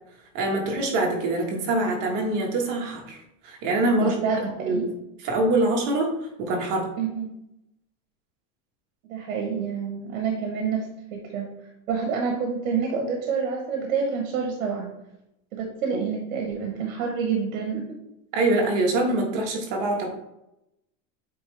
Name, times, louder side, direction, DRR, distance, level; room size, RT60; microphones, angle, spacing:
voice 1, 0.3-4.2 4.6-4.9 5.2-6.1 6.4-6.9 18.3-20.1, right 2 dB, 45° right, 0 dB, 1.6 m, -24 dB
voice 2, 4.0-4.4 4.7-4.9 7.0-7.2 9.1-11.5 11.9-14.9 15.5-17.8, right 6 dB, 80° right, 1 dB, 1.3 m, -28 dB
8.5 x 3.3 x 3.4 m, 0.86 s
supercardioid pair, 155°, 42 cm